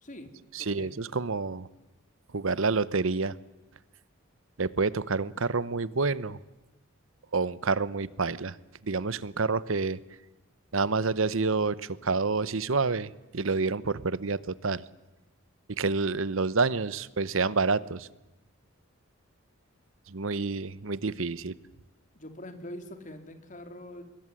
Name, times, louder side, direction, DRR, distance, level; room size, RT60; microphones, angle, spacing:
voice 1, 0.0-0.9 22.1-24.0, left 1 dB, 35° left, 7 dB, 3.2 m, -44 dB
voice 2, 0.5-1.7 2.3-3.4 4.6-6.4 7.3-8.6 8.8-10.0 10.7-14.8 15.8-18.1 20.1-21.6, right 4 dB, 70° right, 18 dB, 0.9 m, -28 dB
25.0 x 22.0 x 9.9 m, 1.0 s
head